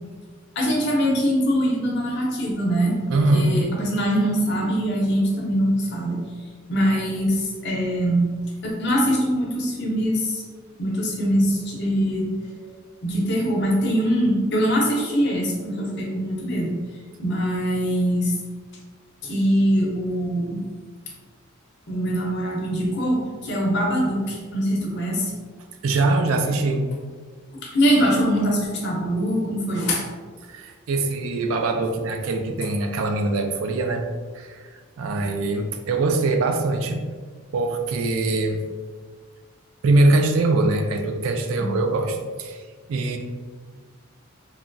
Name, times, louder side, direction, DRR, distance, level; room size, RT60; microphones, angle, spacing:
voice 1, 0.6-2.9 3.3-6.2 6.7-8.3 8.6-10.4 10.8-12.3 12.6-12.7 13.0-16.8 17.2-18.3 19.2-20.6 21.9-25.3 27.5-30.0 41.6-41.7, equal, 55° left, -2 dB, 0.7 m, -23 dB
voice 2, 3.1-3.6 25.8-26.9 30.4-34.0 34.3-37.0 37.5-38.6 39.8-43.2, right 2 dB, 70° right, 4 dB, 0.3 m, -22 dB
3.0 x 2.3 x 2.5 m, 1.5 s
head